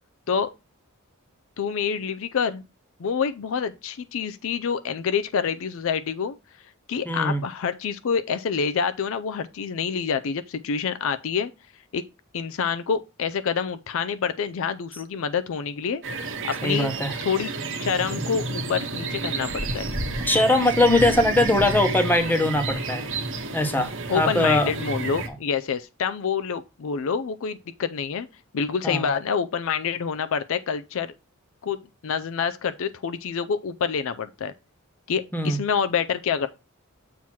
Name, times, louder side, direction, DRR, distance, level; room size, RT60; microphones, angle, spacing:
voice 1, 1.6-2.7 3.0-6.4 6.9-11.5 11.9-12.0 12.3-16.0 16.4-16.9 17.2-17.5 17.8-19.9 24.1-28.3 28.5-31.1 31.6-34.5 35.1-36.5, left 6 dB, 65° left, 0.4 m, -27 dB
voice 2, 7.0-7.4 16.6-17.2 20.3-23.0 23.5-24.7 28.8-29.1 35.3-35.6, left 1 dB, 10° left, 1.0 m, -21 dB
sound 1, 16.0-25.3, right 3 dB, 60° right, 1.1 m, -30 dB
7.4 x 2.9 x 6.0 m
head